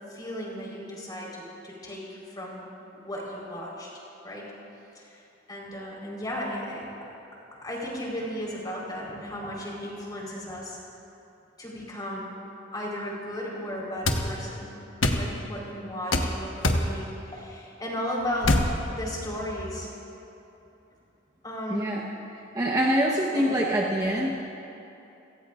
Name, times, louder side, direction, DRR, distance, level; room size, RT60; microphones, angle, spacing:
voice 1, 0.1-2.7 3.0-3.9 4.2-4.4 4.9-5.2 5.5-6.9 7.6-10.8 11.6-12.3 12.7-14.8 15.1-18.5 18.9-19.9 21.4-22.0 23.3-23.6, left 1 dB, 20° left, -4 dB, 4.3 m, -35 dB
sound 1, 14.1-14.2 15.0-15.2 16.1-16.3 16.6-16.9 18.4-18.7, left 2 dB, 85° left, 1.2 m, -22 dB
voice 2, 21.7-22.0 22.5-24.4, equal, 20° right, -2 dB, 1.1 m, -25 dB
29.0 x 17.5 x 2.5 m, 2.9 s
head